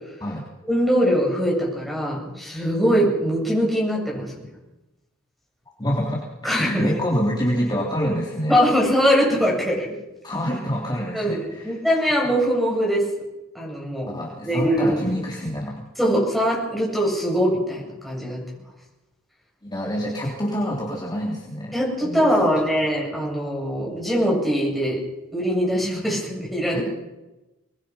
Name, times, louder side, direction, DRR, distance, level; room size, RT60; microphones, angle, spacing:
voice 1, 0.7-4.3 6.4-6.9 8.5-9.9 11.1-13.1 13.5-14.1 14.4-15.0 16.0-18.4 21.7-25.0 25.3-26.8, equal, ahead, -4 dB, 7.9 m, -22 dB
voice 2, 5.8-8.6 10.2-11.8 14.1-15.8 19.6-21.7 22.0-22.7 26.7-26.8, equal, 20° left, -3 dB, 3.4 m, -27 dB
24.0 x 21.0 x 5.7 m, 1.0 s
head